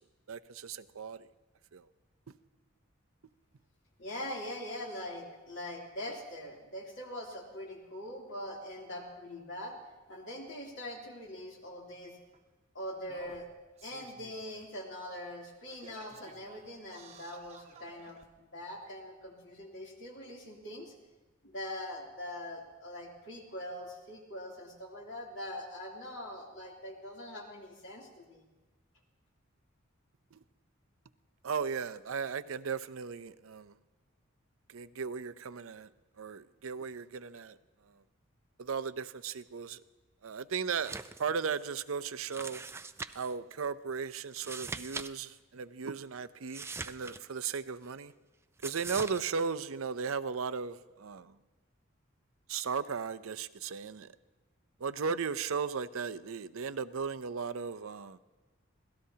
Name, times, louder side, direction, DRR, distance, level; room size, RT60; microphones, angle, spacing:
voice 1, 0.3-1.3 1.7-1.9 30.3-30.4 31.4-33.7 34.7-35.9 36.2-37.6 37.8-38.0 38.6-39.8 40.2-42.6 43.1-48.1 48.6-51.4 52.5-54.1 54.8-58.2, right 5 dB, 80° right, 0.6 m, -36 dB
voice 2, 4.0-9.8 10.1-12.2 12.7-13.5 13.8-20.9 21.4-28.4, left 1 dB, 60° left, 3.0 m, -43 dB
Singing, 11.2-11.3 12.3-12.4 13.0-14.7 15.1-15.2 15.7-18.3 19.0-19.1, right 4 dB, 30° right, 1.0 m, -55 dB
sound 1, 40.7-41.2 41.5-41.6 42.3-43.3 44.3-45.1 45.3-45.4 46.5-47.6 48.6-49.2, right 4 dB, 10° right, 0.4 m, -41 dB
25.5 x 17.5 x 2.8 m
head